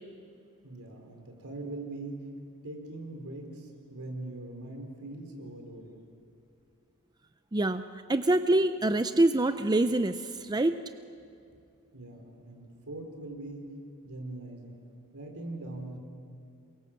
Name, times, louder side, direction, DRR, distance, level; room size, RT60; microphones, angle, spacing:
voice 1, 0.6-2.3 2.6-6.0 11.9-13.7 14.0-14.8 15.1-16.0, right 2 dB, 70° right, 3 dB, 4.5 m, -41 dB
voice 2, 7.5-7.8 8.1-10.9, right 2 dB, 20° right, 10 dB, 0.6 m, -25 dB
28.0 x 23.5 x 7.6 m, 2.5 s
head